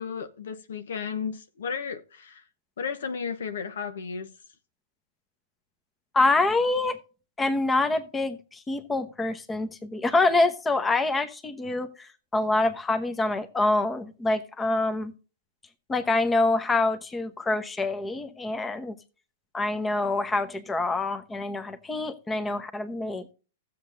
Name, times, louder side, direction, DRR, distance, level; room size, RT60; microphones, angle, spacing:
voice 1, 0.0-2.4 2.8-4.3, left 6 dB, 70° left, 0.9 m, -34 dB
voice 2, 6.1-7.0 7.4-15.1 15.9-18.9 19.5-23.2, left 2 dB, 15° left, 1.0 m, -26 dB
15.0 x 7.6 x 2.6 m
hypercardioid pair, 110°, 0 cm